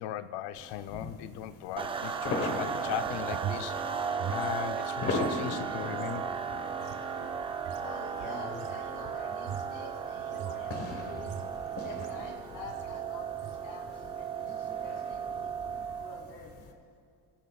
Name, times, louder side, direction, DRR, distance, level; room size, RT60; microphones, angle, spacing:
voice 1, 0.0-3.8 4.3-6.4, left 12 dB, 75° left, 12 dB, 0.6 m, -38 dB
sound 1, 0.5-16.7, left 3 dB, 35° left, 1.1 m, -41 dB
sound 2, 1.8-16.3, right 7 dB, 15° right, 0.3 m, -36 dB
sound 3, 2.9-5.3 5.6-12.3 12.7-13.0 13.3-13.7, right 9 dB, 55° right, 1.2 m, -43 dB
voice 2, 7.8-11.3 11.8-15.6 16.0-16.5, left 1 dB, 50° left, 1 dB, 2.8 m, -47 dB
30.0 x 14.5 x 2.3 m, 2.4 s
cardioid pair, 170°, 41 cm